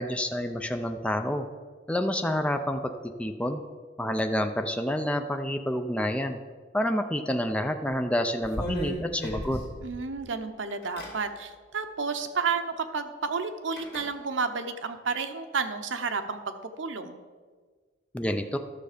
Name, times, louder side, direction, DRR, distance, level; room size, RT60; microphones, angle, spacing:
voice 1, 0.0-1.5 1.9-2.8 3.2-3.6 4.0-6.4 6.7-9.6 18.1-18.6, left 1 dB, 5° left, 6 dB, 0.5 m, -28 dB
sound 1, 7.9-8.0 8.4-10.2 10.7-11.2 12.4-12.5 13.8-14.1, equal, 55° left, 2.7 m, -35 dB
voice 2, 9.8-17.2, right 5 dB, 90° right, 8 dB, 0.8 m, -31 dB
12.0 x 6.6 x 5.0 m, 1.5 s
head